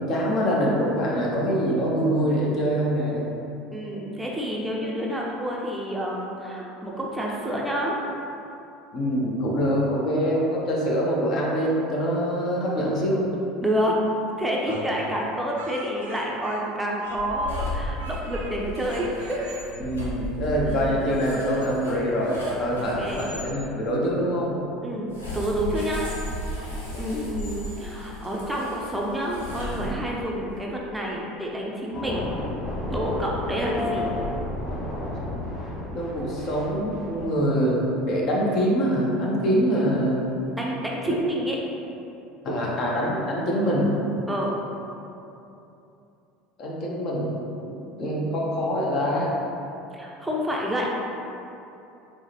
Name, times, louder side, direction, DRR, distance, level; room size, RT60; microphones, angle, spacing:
voice 1, 0.0-3.3 8.9-13.2 14.7-14.9 19.8-24.6 26.9-27.1 35.9-40.3 41.1-41.2 42.4-43.9 46.6-49.3, equal, 50° left, -4 dB, 0.7 m, -24 dB
voice 2, 3.7-8.0 13.6-14.0 14.4-19.6 20.6-20.9 23.0-23.3 24.8-26.1 27.0-32.3 32.9-34.1 40.6-41.6 44.3-44.5 49.9-50.9, equal, 5° right, -3 dB, 0.5 m, -28 dB
Speech, 14.7-17.3 17.5-18.5 18.9-19.7, right 3 dB, 75° right, 0.3 m, -43 dB
sound 1, 17.1-23.5 25.1-30.3, left 1 dB, 90° left, 0.6 m, -35 dB
sound 2, 31.9-37.3, left 1 dB, 25° left, 1.0 m, -32 dB
4.5 x 2.1 x 2.9 m, 2.8 s
hypercardioid pair, 70°, 0 cm